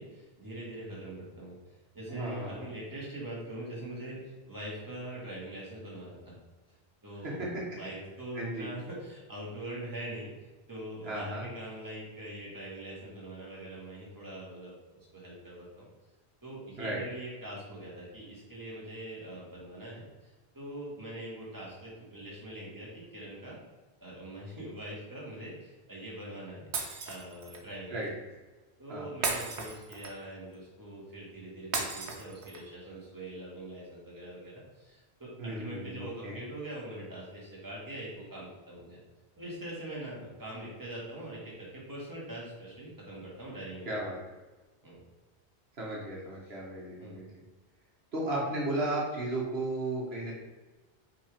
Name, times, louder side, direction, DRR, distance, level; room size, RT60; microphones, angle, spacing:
voice 1, 0.0-1.6 1.9-6.4 7.0-10.3 10.7-15.9 16.4-23.6 24.0-26.7 27.0-28.1 28.8-39.0 39.4-43.9 44.8-45.0 46.4-46.5 47.0-47.2, right 1 dB, 20° right, -6 dB, 2.0 m, -43 dB
voice 2, 2.1-2.7 7.2-7.6 8.3-8.7 11.0-11.5 16.8-17.0 27.9-28.1 28.9-29.1 35.4-36.4 43.9-44.2 45.8-47.2 48.1-50.3, right 2 dB, 70° right, -4 dB, 1.6 m, -34 dB
Shatter, 26.7-27.6 29.2-30.3 31.7-32.7, right 4 dB, 90° right, 1.2 m, -35 dB
5.9 x 3.8 x 5.0 m, 1.2 s
omnidirectional pair, 1.1 m